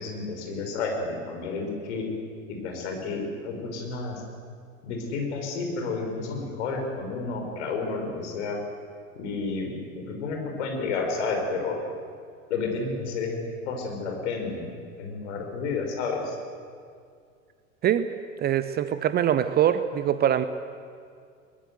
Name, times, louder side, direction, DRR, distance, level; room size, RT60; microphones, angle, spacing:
voice 1, 0.0-2.0 2.5-4.2 4.8-8.6 9.2-11.8 12.5-13.4 13.7-14.7 15.0-16.4, left 4 dB, 55° left, 2 dB, 5.6 m, -31 dB
voice 2, 18.4-20.4, right 10 dB, 25° right, 12 dB, 0.8 m, -23 dB
22.5 x 20.5 x 8.1 m, 2.2 s
figure-of-eight pair, 85°, 41 cm